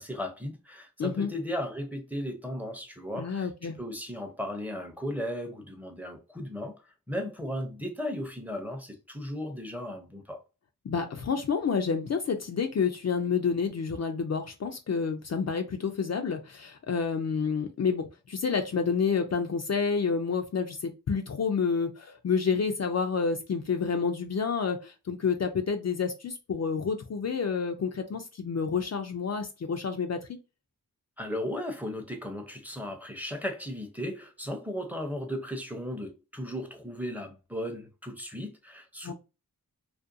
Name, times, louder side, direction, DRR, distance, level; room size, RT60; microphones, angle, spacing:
voice 1, 0.0-10.4 31.2-39.1, equal, 5° right, 0.6 m, -36 dB
voice 2, 1.0-1.3 3.2-3.8 10.8-30.3 39.0-39.1, left 5 dB, 50° left, 0.4 m, -29 dB
2.4 x 2.2 x 2.6 m
wide cardioid pair, 55°, 34 cm